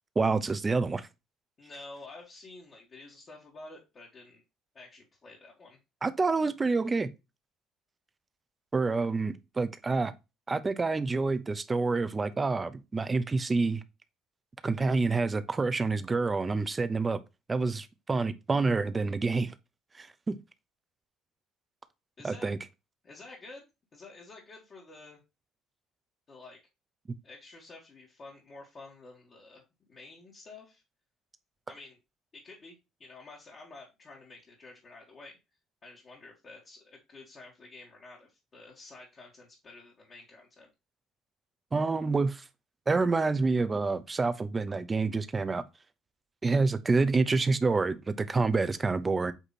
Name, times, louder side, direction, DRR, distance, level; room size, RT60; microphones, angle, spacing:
voice 1, 0.2-1.1 6.0-7.1 8.7-10.1 10.5-13.8 14.6-17.2 17.5-19.5 20.0-20.4 22.2-22.6 41.7-42.4 42.9-45.6 46.4-49.3, right 3 dB, 20° right, 0.6 m, -27 dB
voice 2, 1.6-4.4 4.7-5.8 22.2-22.5 23.0-25.2 26.3-26.6 27.2-29.6 29.9-30.8 31.7-32.0 32.3-35.4 35.8-40.7, left 3 dB, 35° left, 1.9 m, -50 dB
8.1 x 3.0 x 4.1 m
cardioid pair, 125°, 0 cm